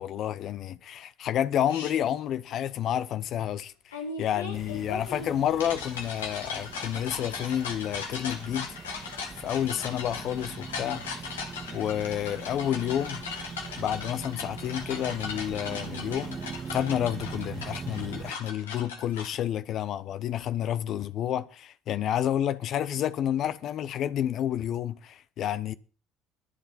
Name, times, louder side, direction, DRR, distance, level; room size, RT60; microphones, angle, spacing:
voice 1, 0.0-9.1 9.4-11.0 11.7-13.2 13.8-16.4 16.7-25.7, left 10 dB, 60° left, 0.9 m, -30 dB
sound 1, 1.7-1.9 3.9-19.4, left 5 dB, 85° left, 2.1 m, -38 dB
sound 2, 4.5-18.3, right 5 dB, 40° right, 1.9 m, -42 dB
22.5 x 8.0 x 4.3 m
hypercardioid pair, 60°, 0 cm